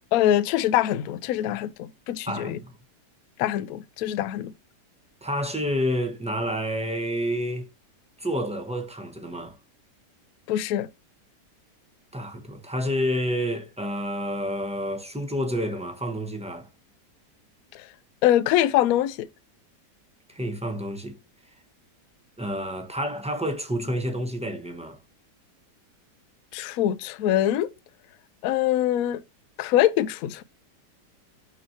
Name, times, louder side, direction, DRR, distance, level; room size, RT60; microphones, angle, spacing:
voice 1, 0.0-2.6 3.4-4.5 10.5-10.9 17.7-17.9 18.2-19.3 26.5-27.7 28.4-29.2 29.6-30.4, left 12 dB, 70° left, 0.9 m, -24 dB
voice 2, 2.3-2.7 5.2-7.7 8.2-9.5 12.1-16.7 20.3-21.2 22.4-25.0, equal, 5° right, 0.6 m, -29 dB
6.2 x 3.0 x 5.6 m
omnidirectional pair, 1.8 m